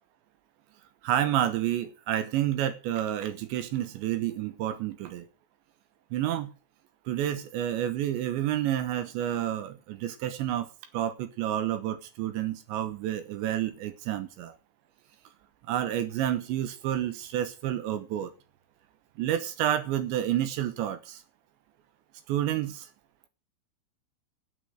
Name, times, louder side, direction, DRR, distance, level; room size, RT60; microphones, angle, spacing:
voice 1, 1.0-5.3 6.1-6.5 7.1-10.7 10.9-14.5 15.7-18.3 19.2-21.2 22.3-22.9, right 11 dB, 75° right, 3.2 m, -29 dB
11.5 x 11.0 x 6.4 m
omnidirectional pair, 5.6 m